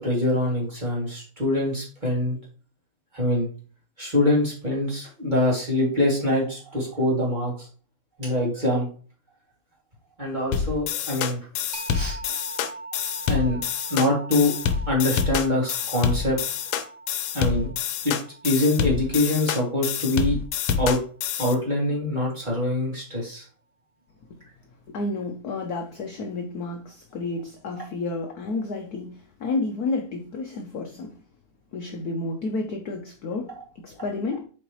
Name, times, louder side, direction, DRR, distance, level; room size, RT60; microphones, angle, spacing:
voice 1, 0.0-2.4 3.1-3.5 4.0-7.7 8.2-8.9 10.2-11.4 11.9-12.2 13.3-13.6 13.9-14.5 14.9-16.4 17.3-17.7 18.0-18.1 18.4-20.4 20.8-21.0 21.4-23.5, left 1 dB, 20° right, 2.5 m, -24 dB
sound 1, 10.5-21.6, left 7 dB, 85° left, 1.6 m, -27 dB
sound 2, 11.7-21.1, right 3 dB, 85° right, 0.4 m, -43 dB
voice 2, 24.9-31.2 31.7-34.4, left 3 dB, 60° left, 1.0 m, -31 dB
7.9 x 4.4 x 3.1 m
omnidirectional pair, 2.4 m